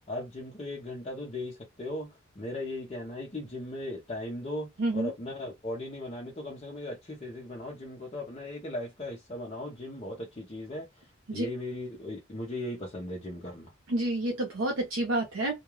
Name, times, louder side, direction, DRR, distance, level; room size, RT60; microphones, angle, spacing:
voice 1, 0.1-11.0 11.3-13.7, left 1 dB, 30° left, 0.6 m, -38 dB
voice 2, 4.8-5.1 11.3-11.5 13.9-15.6, right 1 dB, 70° right, 0.7 m, -29 dB
2.3 x 2.2 x 3.0 m
head